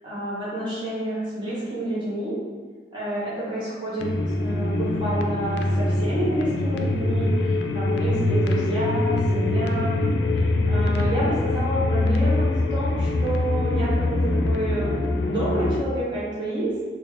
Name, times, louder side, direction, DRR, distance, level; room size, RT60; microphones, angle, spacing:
voice 1, 0.0-2.4 2.9-10.0 10.3-16.7, right 1 dB, 25° right, -9 dB, 1.2 m, -29 dB
sound 1, 4.0-15.8, left 2 dB, 85° left, 0.3 m, -23 dB
4.1 x 2.1 x 3.4 m, 1.5 s
head